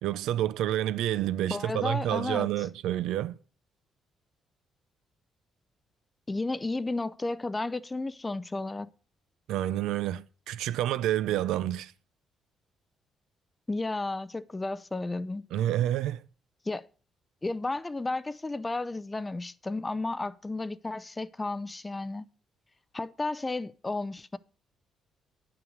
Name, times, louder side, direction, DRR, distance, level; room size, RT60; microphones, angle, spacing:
voice 1, 0.0-3.4 9.5-11.9 15.5-16.2, right 12 dB, 90° right, 0.5 m, -29 dB
voice 2, 1.5-2.5 6.3-8.9 13.7-15.5 16.7-16.9 17.4-22.3 22.9-24.4, left 2 dB, 20° left, 0.5 m, -33 dB
9.4 x 5.9 x 6.4 m
cardioid pair, 90°, 0 cm